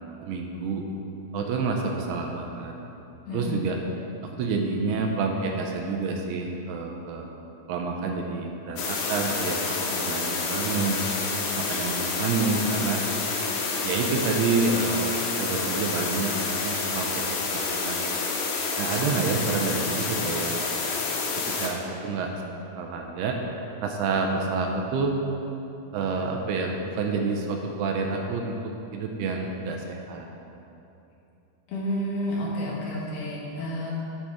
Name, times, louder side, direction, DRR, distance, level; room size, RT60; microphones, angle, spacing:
voice 1, 0.2-0.9 1.3-2.7 3.3-3.8 4.3-7.3 7.7-11.0 11.4-13.0 13.8-15.1 15.4-18.1 18.8-20.7 21.4-22.3 22.8-23.4 23.8-25.2 25.9-30.3, right 4 dB, 80° right, 2 dB, 2.5 m, -28 dB
voice 2, 3.3-3.6 31.7-33.9, equal, 70° left, -4 dB, 3.0 m, -30 dB
sound 1, 8.8-21.7, left 4 dB, 85° left, 3.1 m, -28 dB
8.7 x 7.8 x 3.5 m, 2.8 s
omnidirectional pair, 4.8 m